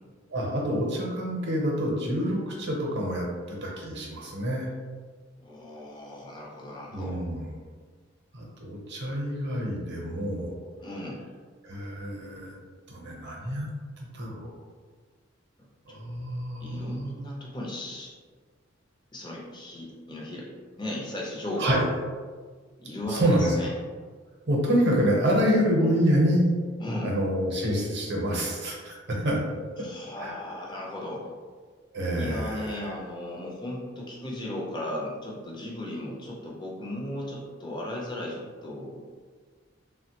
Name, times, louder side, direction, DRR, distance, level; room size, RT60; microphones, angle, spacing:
voice 1, 0.3-4.7 6.9-7.5 8.3-10.6 11.6-12.6 12.9-13.7 14.0-14.5 15.9-17.1 21.6-21.8 23.1-23.5 24.5-26.4 27.0-29.4 30.2-30.3 31.9-32.9, equal, 60° right, -2 dB, 0.7 m, -27 dB
voice 2, 5.4-7.2 10.8-11.2 15.9-16.0 16.6-18.1 19.1-20.5 20.8-21.8 22.8-23.7 25.8-25.9 26.8-27.1 29.8-31.3 32.1-39.0, left 1 dB, 20° left, -4 dB, 0.6 m, -36 dB
3.3 x 2.1 x 2.9 m, 1.5 s
head